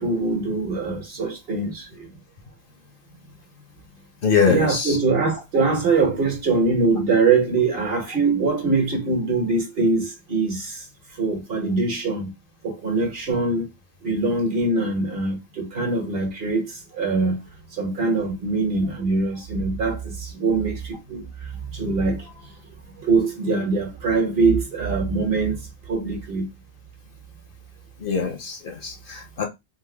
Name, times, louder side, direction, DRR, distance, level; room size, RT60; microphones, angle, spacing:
voice 1, 0.0-2.1 4.4-10.8 11.1-12.3 12.6-13.7 14.0-17.5 17.7-22.3 23.0-26.5, right 3 dB, 60° right, 1.4 m, -23 dB
voice 2, 4.2-4.9 28.0-29.4, left 6 dB, 55° left, 0.8 m, -23 dB
3.4 x 2.1 x 3.2 m
omnidirectional pair, 1.1 m